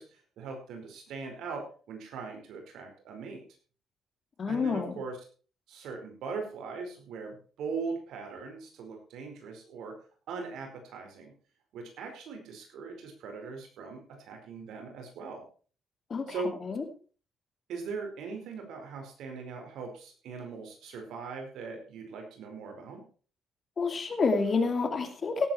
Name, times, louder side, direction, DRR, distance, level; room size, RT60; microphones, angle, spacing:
voice 1, 0.0-3.4 4.5-5.2 5.7-10.0 10.3-11.3 11.7-15.4 16.3-16.5 17.7-23.0, right 4 dB, 80° right, 3 dB, 4.8 m, -40 dB
voice 2, 4.4-4.9 16.1-16.2 16.6-16.8 23.8-25.5, left 4 dB, 45° left, 7 dB, 2.7 m, -28 dB
17.5 x 8.8 x 4.5 m, 0.40 s
cardioid pair, 90°, 0 cm